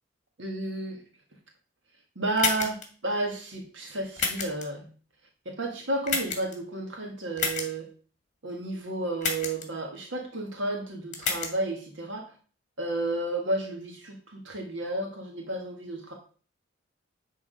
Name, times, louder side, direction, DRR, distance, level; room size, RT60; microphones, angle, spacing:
voice 1, 0.4-1.0 2.1-4.9 5.4-7.9 8.4-12.3 12.8-16.1, right 2 dB, 70° right, 1 dB, 1.7 m, -32 dB
sound 1, 2.4-2.9 4.2-4.6 6.1-6.5 7.4-7.7 9.2-9.7 11.1-11.5, left 5 dB, 40° left, 1.7 m, -29 dB
10.0 x 3.8 x 5.2 m, 0.39 s
head